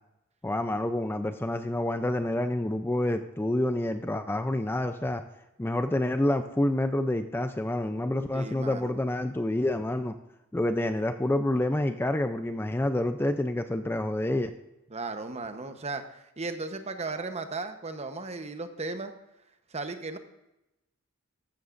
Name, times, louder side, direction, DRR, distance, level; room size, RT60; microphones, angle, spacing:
voice 1, 0.4-5.2 5.6-10.1 10.5-14.5, left 1 dB, 10° left, 8 dB, 0.4 m, -28 dB
voice 2, 8.3-8.9 14.9-19.1 19.7-20.2, right 3 dB, 30° right, 8 dB, 0.9 m, -36 dB
14.5 x 12.5 x 2.6 m, 0.93 s
head